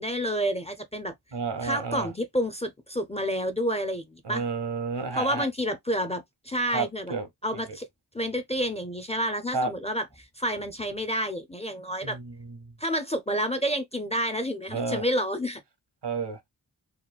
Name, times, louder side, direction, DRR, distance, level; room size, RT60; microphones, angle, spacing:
voice 1, 0.0-1.1 1.6-4.4 5.1-7.1 7.4-7.9 8.1-12.2 12.8-15.6, equal, 15° left, 0.4 m, -29 dB
voice 2, 1.3-2.1 4.2-5.4 6.7-7.3 7.5-7.6 9.5-9.7 12.0-12.7 14.7-15.0 16.0-16.4, right 4 dB, 75° right, 0.8 m, -31 dB
2.9 x 2.2 x 2.2 m
wide cardioid pair, 40°, 41 cm